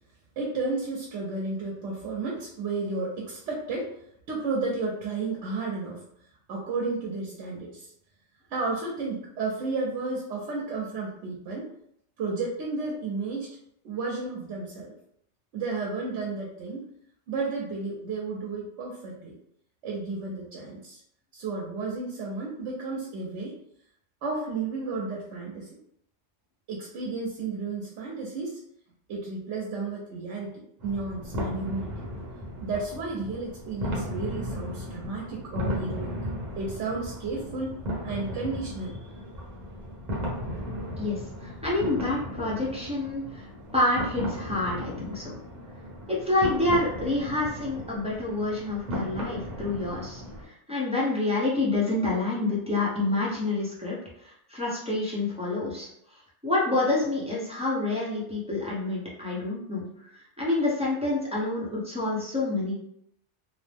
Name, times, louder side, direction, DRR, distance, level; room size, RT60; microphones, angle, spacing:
voice 1, 0.4-3.9 4.3-6.0 6.5-7.9 8.5-11.7 12.2-13.5 13.8-14.9 15.5-16.9 17.3-19.3 19.8-21.0 21.3-23.6 24.2-25.7 26.7-28.6 29.1-30.5 30.8-32.1 32.6-36.1 36.6-39.0, right 3 dB, 90° right, -3 dB, 0.9 m, -32 dB
sound 1, 30.8-50.5, equal, 45° right, 0.9 m, -36 dB
voice 2, 41.0-43.4 43.7-45.3 46.1-50.2 50.7-54.0 54.2-55.9 56.4-59.9 60.4-62.7, left 2 dB, 5° right, -7 dB, 0.6 m, -28 dB
2.6 x 2.0 x 3.3 m, 0.72 s
omnidirectional pair, 1.2 m